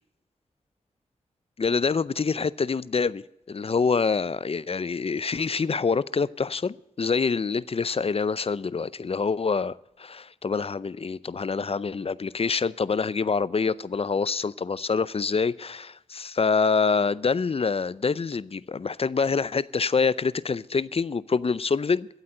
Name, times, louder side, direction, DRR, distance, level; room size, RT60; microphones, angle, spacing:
voice 1, 1.6-3.2 3.5-22.1, left 5 dB, 50° left, 0.5 m, -26 dB
13.0 x 8.3 x 8.9 m
wide cardioid pair, 65°, 13 cm